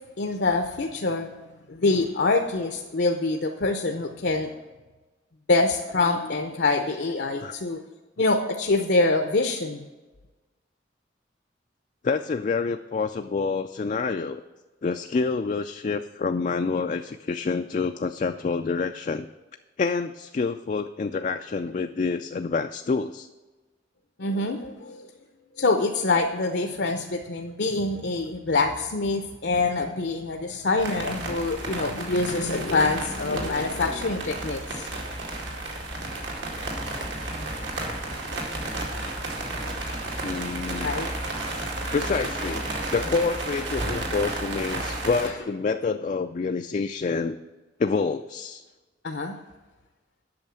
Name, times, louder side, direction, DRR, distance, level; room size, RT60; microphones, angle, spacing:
voice 1, 0.2-1.3 1.7-4.5 5.5-7.8 8.2-9.8 24.2-25.0 25.6-34.9 40.8-41.1 49.0-49.3, left 3 dB, 65° left, 4 dB, 0.7 m, -25 dB
voice 2, 12.0-14.4 14.8-19.3 19.8-23.3 40.2-40.9 41.9-47.4 47.8-48.6, left 4 dB, 40° left, 7 dB, 0.3 m, -27 dB
sound 1, 30.8-45.3, right 2 dB, 75° right, 2.3 m, -32 dB
8.8 x 6.4 x 7.5 m, 1.2 s
head